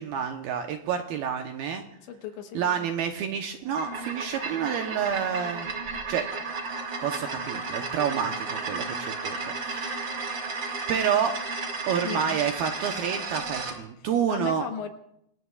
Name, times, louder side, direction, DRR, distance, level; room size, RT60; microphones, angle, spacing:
voice 1, 0.0-1.8 2.6-5.7 6.1-6.3 7.0-10.1 10.9-11.4 11.9-14.7, right 8 dB, 75° right, 5 dB, 2.3 m, -29 dB
voice 2, 2.0-2.9 12.0-12.4 14.0-14.9, left 8 dB, 80° left, 5 dB, 3.3 m, -37 dB
sound 1, 3.7-13.8, right 4 dB, 40° right, 1.7 m, -33 dB
27.0 x 19.5 x 2.4 m, 0.75 s
omnidirectional pair, 5.1 m